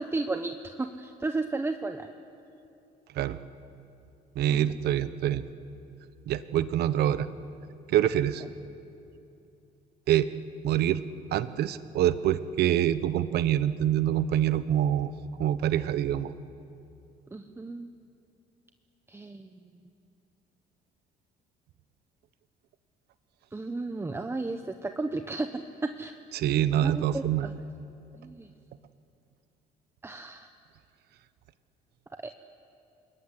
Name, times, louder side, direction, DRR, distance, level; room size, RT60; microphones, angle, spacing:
voice 1, 0.0-2.1 4.5-4.7 17.3-17.9 19.1-19.5 23.5-25.5 26.0-26.2 26.7-27.5 28.2-28.5 30.0-30.5, right 3 dB, 15° right, 7 dB, 1.0 m, -33 dB
voice 2, 4.3-5.4 6.3-7.3 7.9-8.4 10.1-10.3 10.6-11.0 11.3-15.1 15.4-16.3 26.3-27.5, right 11 dB, 70° right, 14 dB, 1.1 m, -25 dB
26.5 x 21.5 x 9.9 m, 2.7 s
cardioid pair, 110°, 17 cm